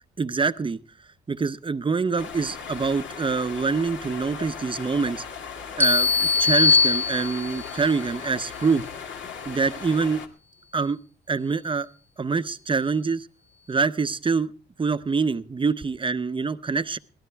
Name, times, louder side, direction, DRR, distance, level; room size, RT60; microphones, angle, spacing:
voice 1, 0.2-0.8 1.3-5.2 5.8-8.8 9.5-10.2 10.7-11.0 11.3-11.9 12.2-13.3 13.7-14.5 14.8-17.0, right 4 dB, 25° right, 13 dB, 0.8 m, -25 dB
sound 1, 2.2-10.3, left 6 dB, 70° left, 2.0 m, -38 dB
sound 2, 5.8-7.7, left 4 dB, 10° left, 0.8 m, -21 dB
22.0 x 17.0 x 3.5 m, 0.37 s
cardioid pair, 90°, 20 cm